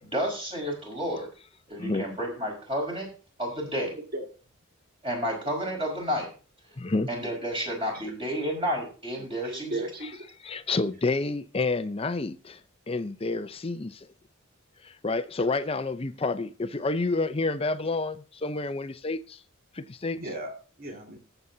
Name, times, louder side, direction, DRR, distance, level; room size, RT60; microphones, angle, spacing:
voice 1, 0.0-1.3 1.7-3.1 3.4-3.9 5.0-6.3 7.1-9.8, equal, 25° right, 5.1 m, -31 dB
voice 2, 3.8-4.2 7.9-8.1 9.1-10.3 20.2-20.5 20.8-21.2, right 2 dB, 45° right, 2.1 m, -36 dB
voice 3, 6.8-7.1 10.0-10.1 10.4-12.6 12.9-14.1 14.8-19.4 19.7-20.2, left 3 dB, 25° left, 0.5 m, -29 dB
18.5 x 8.0 x 2.7 m
head